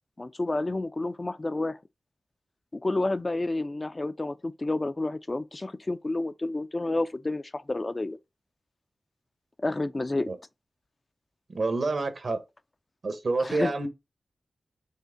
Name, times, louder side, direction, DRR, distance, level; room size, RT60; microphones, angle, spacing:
voice 1, 0.2-1.8 2.7-8.2 9.6-10.3 13.4-13.7, left 2 dB, 35° left, 0.4 m, -30 dB
voice 2, 11.5-12.4 13.0-13.9, right 3 dB, 60° right, 1.0 m, -28 dB
5.4 x 2.1 x 3.7 m
cardioid pair, 50°, 0 cm